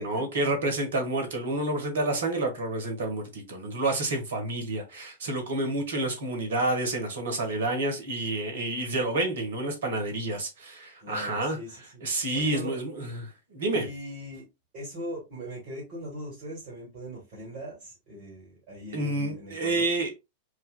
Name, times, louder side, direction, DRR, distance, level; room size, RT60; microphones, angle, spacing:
voice 1, 0.0-11.6 12.0-13.9 18.9-20.1, right 2 dB, 65° right, 1.3 m, -29 dB
voice 2, 11.0-12.0 12.3-12.8 13.7-14.4 14.7-19.9, equal, 45° right, 2.2 m, -40 dB
4.7 x 2.7 x 2.2 m
figure-of-eight pair, 90°, 0 cm